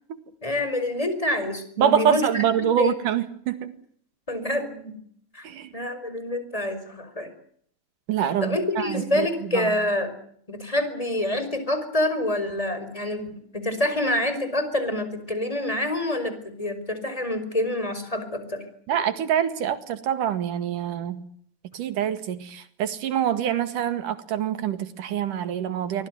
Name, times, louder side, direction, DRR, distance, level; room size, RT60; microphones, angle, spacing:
voice 1, 0.4-2.5 2.8-3.1 4.3-5.0 5.3-5.5 5.7-7.3 8.4-10.1 10.5-18.6, left 1 dB, 10° left, 5.1 m, -27 dB
voice 2, 1.8-3.7 5.4-5.7 8.1-9.3 9.5-9.7 18.9-21.2 21.7-26.1, right 9 dB, 90° right, 3.5 m, -25 dB
24.0 x 19.5 x 9.5 m
omnidirectional pair, 3.6 m